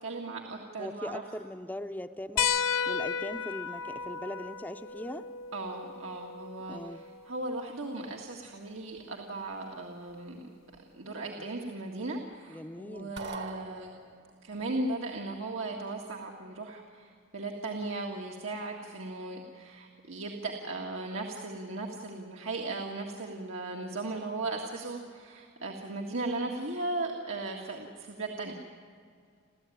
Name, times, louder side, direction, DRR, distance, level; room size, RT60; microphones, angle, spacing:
voice 1, 0.0-1.2 5.5-10.4 10.9-13.9 14.4-28.5, right 2 dB, 80° right, 0 dB, 1.9 m, -37 dB
voice 2, 0.8-2.5 2.9-5.3 6.7-7.0 12.5-13.1, left 1 dB, 10° left, 9 dB, 0.6 m, -40 dB
sound 1, 2.4-7.4 9.0-9.1 10.7-10.8, left 7 dB, 85° left, 0.6 m, -34 dB
sound 2, 13.2-14.5, right 3 dB, 60° right, 1.5 m, -41 dB
30.0 x 13.5 x 9.3 m, 2.2 s
head